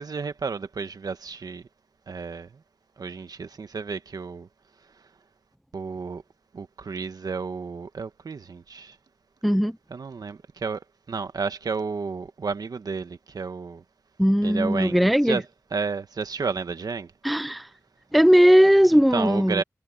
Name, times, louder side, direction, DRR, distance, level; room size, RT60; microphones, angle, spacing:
voice 1, 0.0-1.6 2.1-2.5 3.0-4.5 5.7-6.2 6.5-9.0 9.9-10.8 11.1-13.8 14.4-15.4 15.7-17.1 18.9-19.6, right 5 dB, 75° right, 1.5 m, -31 dB
voice 2, 9.4-9.8 14.2-15.4 17.2-17.7 18.1-19.6, equal, ahead, 0.4 m, -18 dB
wide cardioid pair, 65°, 7 cm